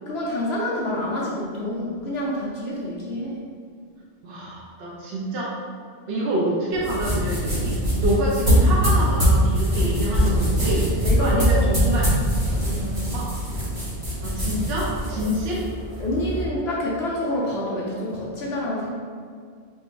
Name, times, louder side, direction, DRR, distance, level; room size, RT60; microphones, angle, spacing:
voice 1, 0.1-3.4 11.0-12.0 12.5-13.1 15.1-15.3 16.0-18.9, left 1 dB, 70° left, -4 dB, 0.9 m, -28 dB
voice 2, 4.2-5.6 6.1-12.1 13.1-13.3 14.2-15.6, right 1 dB, 65° right, -5 dB, 0.8 m, -27 dB
sound 1, 6.7-16.4, equal, 30° right, 1.6 m, -22 dB
4.6 x 3.5 x 2.5 m, 2.1 s
omnidirectional pair, 1.2 m